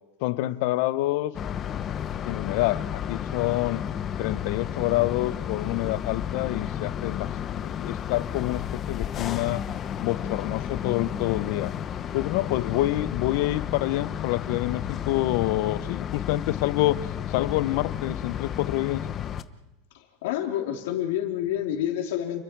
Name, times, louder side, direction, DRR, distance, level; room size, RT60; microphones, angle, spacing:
voice 1, 0.2-1.3 2.2-3.8 4.2-9.6 10.0-11.7 12.1-17.0 17.3-19.0, left 17 dB, 60° left, 16 dB, 0.8 m, -27 dB
sound 1, 1.3-19.4, left 9 dB, 30° left, 0.8 m, -32 dB
voice 2, 19.9-22.4, left 11 dB, 80° left, 3 dB, 3.4 m, -28 dB
29.5 x 22.0 x 4.7 m, 0.94 s
supercardioid pair, 155°, 0 cm